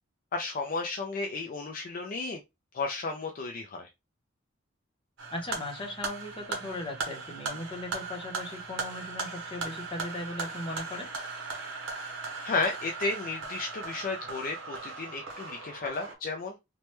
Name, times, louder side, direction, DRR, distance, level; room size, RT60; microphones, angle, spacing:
voice 1, 0.3-2.4 2.7-3.9 12.4-16.6, left 3 dB, 45° left, 0.4 m, -33 dB
sound 1, 5.2-16.1, right 4 dB, 65° right, 0.9 m, -38 dB
voice 2, 5.3-11.1, left 1 dB, 25° left, 0.8 m, -38 dB
3.1 x 2.1 x 2.9 m
head